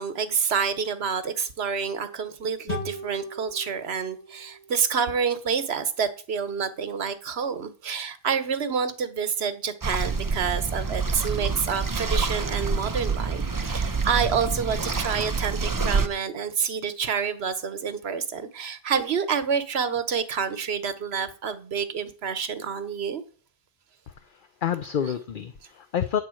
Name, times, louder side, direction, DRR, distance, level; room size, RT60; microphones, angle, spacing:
voice 1, 0.0-23.2, right 6 dB, 75° right, 1.2 m, -28 dB
sound 1, 2.7-6.0, left 1 dB, 40° left, 4.8 m, -39 dB
sound 2, 9.8-16.1, right 4 dB, 20° right, 0.6 m, -27 dB
voice 2, 24.1-26.2, left 8 dB, 55° left, 0.8 m, -29 dB
9.6 x 4.4 x 7.6 m
omnidirectional pair, 1.1 m